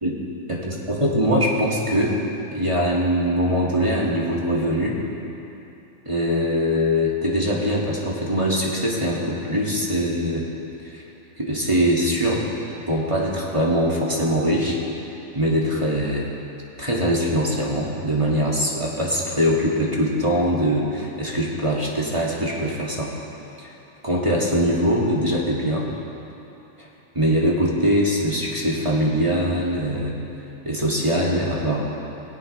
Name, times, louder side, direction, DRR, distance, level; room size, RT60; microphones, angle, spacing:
voice 1, 0.5-2.2 2.5-5.0 6.1-10.5 10.9-11.0 11.4-12.5 12.8-14.8 15.3-16.3 16.8-23.1 23.6-23.7 24.0-25.9 26.8-26.9 27.2-30.2 30.6-31.8, equal, 20° right, -4 dB, 2.2 m, -22 dB
20.5 x 17.0 x 3.3 m, 2.9 s
omnidirectional pair, 1.4 m